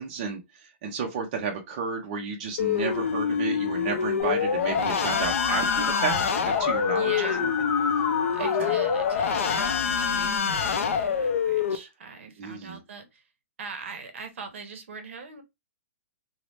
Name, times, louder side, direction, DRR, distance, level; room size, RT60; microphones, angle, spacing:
voice 1, 0.0-7.1 7.4-7.7 8.4-8.7 12.4-12.8, right 5 dB, 35° right, 0.6 m, -32 dB
sound 1, 2.6-11.8, left 6 dB, 80° left, 0.5 m, -26 dB
Musical instrument, 4.2-9.8, left 7 dB, 25° left, 0.4 m, -31 dB
voice 2, 6.9-7.5 8.3-13.3 13.6-15.4, right 5 dB, 65° right, 0.8 m, -41 dB
2.6 x 2.0 x 3.1 m
hypercardioid pair, 165°, 7 cm